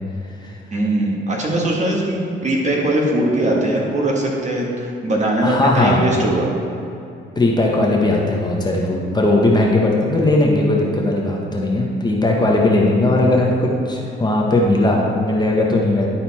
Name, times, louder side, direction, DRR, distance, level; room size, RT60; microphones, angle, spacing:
voice 1, 0.7-6.5, right 1 dB, 35° right, -2 dB, 1.6 m, -20 dB
voice 2, 5.4-6.0 7.4-16.1, left 2 dB, 20° left, -2 dB, 1.1 m, -18 dB
11.0 x 4.2 x 4.2 m, 2.7 s
cardioid pair, 90°, 20 cm